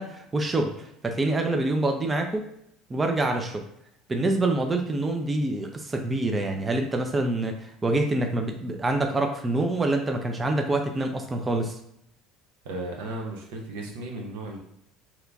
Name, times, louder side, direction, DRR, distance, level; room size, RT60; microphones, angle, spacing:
voice 1, 0.0-2.4 2.9-3.6 4.1-11.8, right 2 dB, 20° right, 4 dB, 0.4 m, -26 dB
voice 2, 12.6-14.6, right 2 dB, 90° right, 0 dB, 0.8 m, -35 dB
2.9 x 2.4 x 3.4 m, 0.75 s
supercardioid pair, 105°, 0 cm